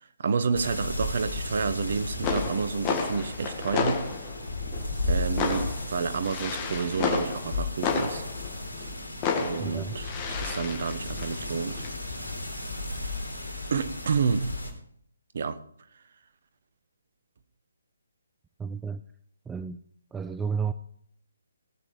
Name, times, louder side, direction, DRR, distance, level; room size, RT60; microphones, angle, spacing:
voice 1, 0.2-4.1 5.1-8.2 9.4-11.9 13.7-14.6 15.3-15.6, right 5 dB, 45° right, 1.2 m, -29 dB
sound 1, 0.5-14.7, left 2 dB, 75° left, 3.4 m, -35 dB
sound 2, 1.9-2.0 2.2-8.9 9.2-11.9, left 5 dB, 20° left, 1.9 m, -32 dB
voice 2, 9.6-9.9 18.6-19.0 19.5-19.8 20.1-20.7, right 6 dB, 5° right, 0.4 m, -31 dB
18.5 x 7.8 x 5.0 m
figure-of-eight pair, 140°, 0 cm